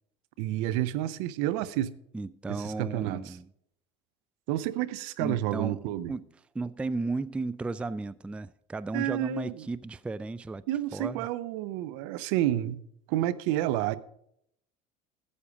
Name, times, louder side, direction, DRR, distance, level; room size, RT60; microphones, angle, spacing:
voice 1, 0.4-1.9 2.5-3.4 4.5-6.1 8.9-9.7 10.7-12.8 13.1-14.0, right 13 dB, 65° right, 0.7 m, -30 dB
voice 2, 2.1-3.5 5.2-5.8 6.1-6.3 6.5-10.6 10.9-11.3, right 3 dB, 5° right, 0.3 m, -34 dB
13.0 x 8.4 x 5.0 m
hypercardioid pair, 75°, 18 cm